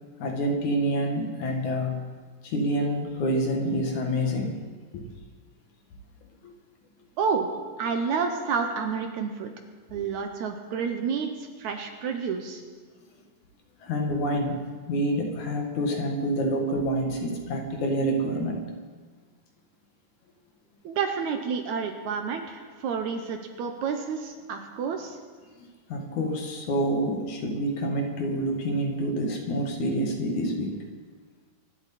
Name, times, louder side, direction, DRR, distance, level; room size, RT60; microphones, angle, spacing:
voice 1, 0.2-2.1 2.4-4.6 4.9-5.0 6.4-6.5 7.8-7.9 9.9-10.0 13.8-18.7 25.6-30.8, equal, 65° left, 2 dB, 3.0 m, -27 dB
voice 2, 7.2-7.5 7.8-9.5 9.9-12.6 20.8-25.2, right 6 dB, 70° right, 5 dB, 2.1 m, -29 dB
24.0 x 11.5 x 4.3 m, 1.5 s
omnidirectional pair, 3.9 m